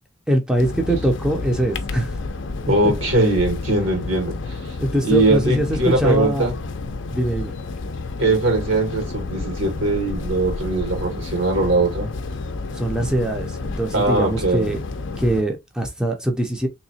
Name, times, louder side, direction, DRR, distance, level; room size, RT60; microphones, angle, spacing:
voice 1, 0.3-2.2 4.8-6.5 7.1-7.5 12.7-14.8 15.2-16.7, right 1 dB, 5° right, 0.5 m, -22 dB
sound 1, 0.6-15.4, left 3 dB, 65° left, 0.5 m, -30 dB
voice 2, 2.7-4.7 5.0-6.6 8.2-12.1 13.9-14.7, right 2 dB, 75° right, 1.7 m, -21 dB
3.5 x 2.9 x 2.7 m
head